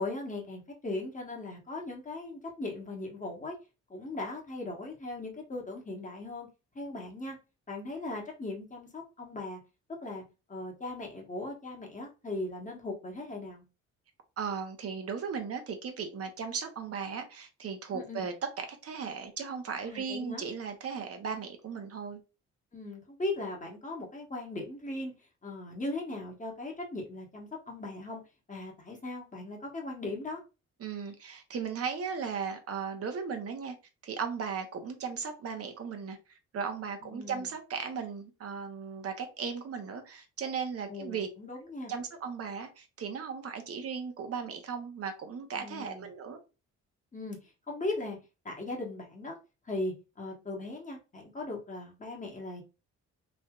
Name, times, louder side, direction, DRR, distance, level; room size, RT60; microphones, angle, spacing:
voice 1, 0.0-3.5 3.9-6.5 6.7-7.4 7.7-9.6 10.0-10.2 10.5-13.6 17.9-18.3 19.8-20.4 22.7-25.1 25.4-28.2 28.5-30.4 37.0-37.5 40.9-41.9 45.5-46.1 47.1-47.4 47.7-48.2 48.4-49.4 49.7-52.6, left 2 dB, 25° left, 1.1 m, -38 dB
voice 2, 14.4-22.2 30.8-33.7 34.0-41.3 41.9-46.4, right 6 dB, 50° right, 0.8 m, -37 dB
3.3 x 2.6 x 2.3 m
cardioid pair, 90°, 30 cm